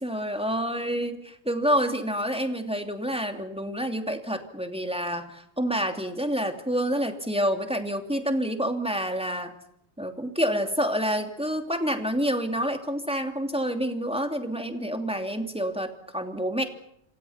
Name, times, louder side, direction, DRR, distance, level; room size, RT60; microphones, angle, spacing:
voice 1, 0.0-9.5 10.0-16.6, equal, 5° right, 5 dB, 2.8 m, -28 dB
28.5 x 27.0 x 5.9 m, 0.74 s
omnidirectional pair, 1.1 m